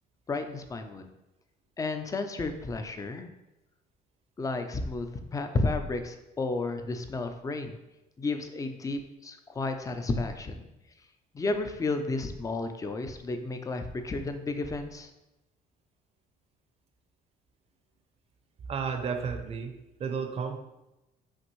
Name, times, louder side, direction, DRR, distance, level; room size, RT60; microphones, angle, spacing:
voice 1, 0.3-1.1 1.8-3.3 4.4-5.1 5.3-7.8 8.2-10.7 11.3-15.1, left 3 dB, 20° left, 7 dB, 0.4 m, -32 dB
voice 2, 18.7-19.7 20.0-20.6, right 6 dB, 35° right, 5 dB, 0.6 m, -32 dB
5.8 x 2.6 x 3.0 m, 0.95 s
cardioid pair, 110°, 17 cm